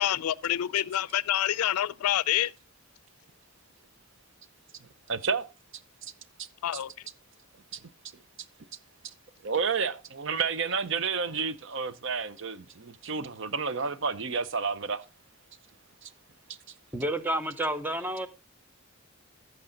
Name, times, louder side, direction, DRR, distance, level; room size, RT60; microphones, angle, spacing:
voice 1, 0.0-2.5 6.6-6.9, left 12 dB, 90° left, 0.4 m, -27 dB
voice 2, 5.1-5.5 7.7-7.8 9.4-15.0 16.0-16.1, right 5 dB, 60° right, 0.7 m, -30 dB
voice 3, 16.9-18.3, right 1 dB, 10° right, 0.7 m, -30 dB
14.5 x 5.5 x 3.9 m
head